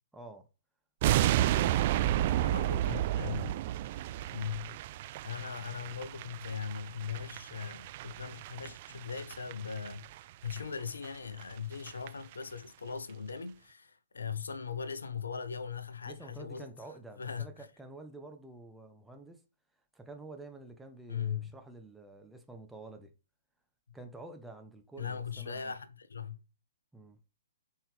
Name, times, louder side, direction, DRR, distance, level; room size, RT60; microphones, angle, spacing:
voice 1, 0.1-0.5 16.1-19.4 19.9-23.1 23.9-25.7 26.9-27.2, right 2 dB, 5° right, 0.9 m, -49 dB
sound 1, 1.0-10.2 10.4-10.6 11.0-11.1 11.4-11.5 11.7-12.1 12.3-12.4, right 13 dB, 40° right, 0.3 m, -32 dB
voice 2, 2.0-3.5 4.3-4.8 5.2-10.1 10.4-16.7 17.2-17.7 21.1-21.5 25.0-26.4, left 6 dB, 65° left, 0.9 m, -39 dB
8.8 x 4.6 x 3.3 m
figure-of-eight pair, 120°, 0 cm